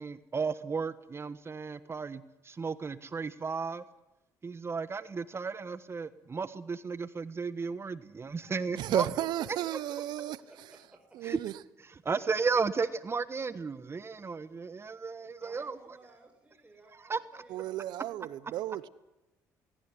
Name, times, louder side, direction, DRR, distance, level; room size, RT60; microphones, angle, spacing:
voice 1, 0.0-3.8 4.4-9.0 11.2-11.4 12.0-15.8 17.0-17.4, right 5 dB, 35° right, 1.3 m, -34 dB
voice 2, 8.8-10.4 11.1-11.6 17.5-18.9, right 14 dB, 75° right, 1.0 m, -33 dB
voice 3, 9.4-11.2 15.4-18.9, right 2 dB, 20° right, 5.3 m, -54 dB
19.0 x 18.0 x 9.8 m
supercardioid pair, 65°, 7 cm